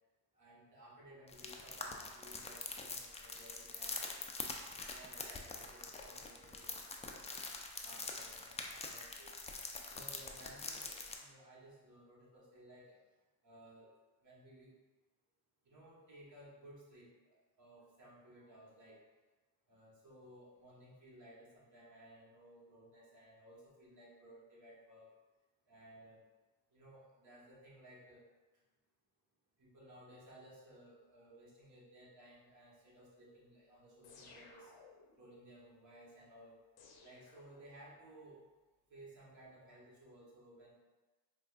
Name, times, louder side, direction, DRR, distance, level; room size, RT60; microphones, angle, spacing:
voice 1, 0.3-4.1 4.9-7.3 7.8-9.3 9.9-13.0 13.4-13.9 14.2-14.8 15.6-19.0 19.7-25.1 25.7-26.2 26.7-28.3 29.6-34.7 35.2-36.5 37.0-38.4 38.9-40.7, right 1 dB, 40° right, -5 dB, 1.3 m, -58 dB
sound 1, 1.3-11.1, left 3 dB, 15° left, 0.3 m, -44 dB
sound 2, 34.0-35.3 36.8-38.1, left 4 dB, 55° left, 0.7 m, -60 dB
4.6 x 2.4 x 2.4 m, 1.2 s
supercardioid pair, 70°, 45 cm